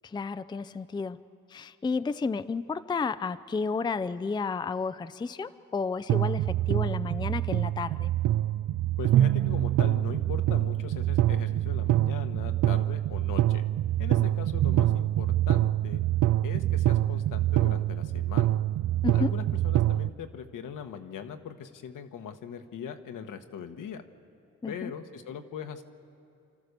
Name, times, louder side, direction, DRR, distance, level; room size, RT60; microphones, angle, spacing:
voice 1, 0.0-1.2 1.5-8.1 19.0-19.3 24.6-24.9, left 4 dB, 15° left, 13 dB, 0.4 m, -32 dB
sound 1, 6.1-20.1, right 13 dB, 65° right, 0.5 m, -25 dB
voice 2, 9.0-13.6 14.0-16.0 16.4-18.6 19.1-24.0 24.7-25.8, left 7 dB, 70° left, 7 dB, 1.3 m, -40 dB
29.5 x 13.0 x 6.7 m, 2.7 s
cardioid pair, 80°, 33 cm